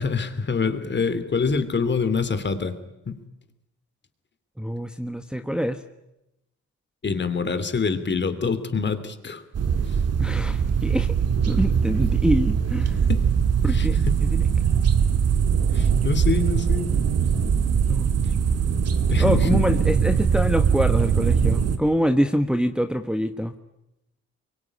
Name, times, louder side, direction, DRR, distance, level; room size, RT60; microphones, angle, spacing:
voice 1, 0.0-2.8 3.1-3.2 7.0-9.4 13.1-13.3 13.7-13.9 15.7-16.9 19.1-19.6, left 5 dB, 35° left, 11 dB, 2.9 m, -25 dB
voice 2, 4.6-5.8 10.2-11.1 11.5-13.0 13.6-14.4 17.9-18.1 19.2-23.5, equal, 5° right, 5 dB, 1.3 m, -25 dB
sound 1, 9.5-21.8, right 7 dB, 55° right, 2.1 m, -21 dB
24.5 x 23.0 x 10.0 m, 0.88 s
cardioid pair, 90°, 30 cm